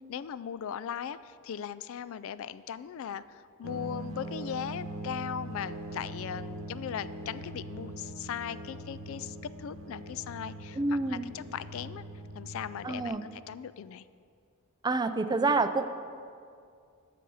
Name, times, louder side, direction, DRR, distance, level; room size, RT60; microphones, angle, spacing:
voice 1, 0.1-12.0 12.4-14.0, left 8 dB, 65° left, 15 dB, 0.3 m, -38 dB
sound 1, 3.6-13.1, right 1 dB, 70° right, 0.9 m, -42 dB
voice 2, 10.8-11.2 12.8-13.2 14.8-15.9, right 3 dB, 20° right, 10 dB, 0.4 m, -27 dB
12.5 x 6.8 x 5.5 m, 2.3 s
head